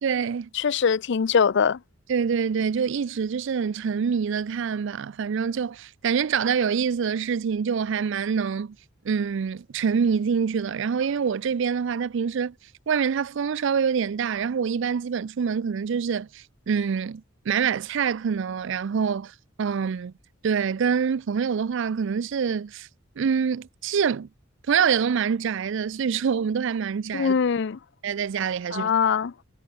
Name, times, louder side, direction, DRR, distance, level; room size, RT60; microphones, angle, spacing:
voice 1, 0.0-0.5 2.1-8.8 9.0-12.5 12.9-19.3 19.6-20.1 20.4-22.9 23.2-24.3 24.7-27.3 28.0-28.9, right 6 dB, 65° right, 0.4 m, -25 dB
voice 2, 0.5-1.8 27.1-27.8 28.7-29.3, left 6 dB, 65° left, 0.5 m, -22 dB
head